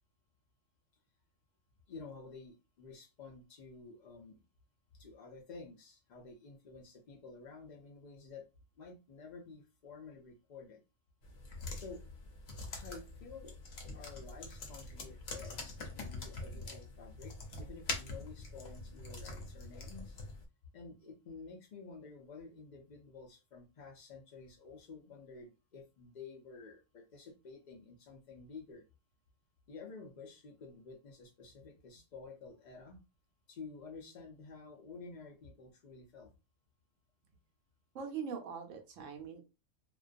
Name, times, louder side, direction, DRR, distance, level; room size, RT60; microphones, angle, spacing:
voice 1, 1.9-4.4 4.9-8.5 8.8-10.8 11.7-12.0 12.7-13.6 13.9-20.2 20.7-28.8 29.7-33.0 33.5-36.3, left 4 dB, 80° left, 2 dB, 0.4 m, -51 dB
sound 1, 11.2-20.4, left 3 dB, 60° left, 0.7 m, -44 dB
voice 2, 37.9-39.4, right 6 dB, 70° right, 4 dB, 0.9 m, -42 dB
2.4 x 2.2 x 2.4 m, 0.28 s
omnidirectional pair, 1.5 m